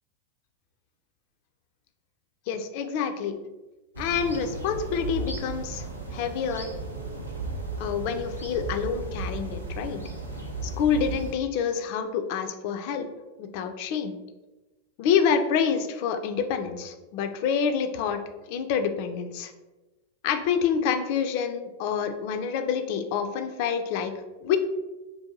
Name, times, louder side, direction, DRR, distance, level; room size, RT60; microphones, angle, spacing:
voice 1, 2.5-3.4 4.0-6.7 7.8-10.0 10.6-13.1 13.4-14.2 15.0-18.2 18.5-19.5 20.2-24.1 24.4-24.6, left 7 dB, 45° left, 8 dB, 0.3 m, -27 dB
sound 1, 3.9-11.3, right 2 dB, 85° right, 0.5 m, -35 dB
2.6 x 2.2 x 3.9 m, 1.1 s
figure-of-eight pair, 90°, 0 cm